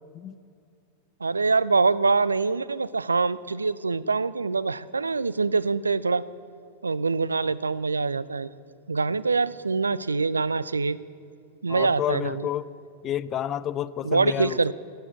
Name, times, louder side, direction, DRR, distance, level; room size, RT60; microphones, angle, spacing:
voice 1, 1.2-6.3 6.8-8.5 8.9-11.0 11.6-12.5 14.0-14.7, right 4 dB, 75° right, 18 dB, 0.3 m, -24 dB
voice 2, 11.7-12.7 13.0-14.7, left 10 dB, 30° left, 18 dB, 0.4 m, -30 dB
12.0 x 8.4 x 8.0 m, 2.3 s
figure-of-eight pair, 90°, 0 cm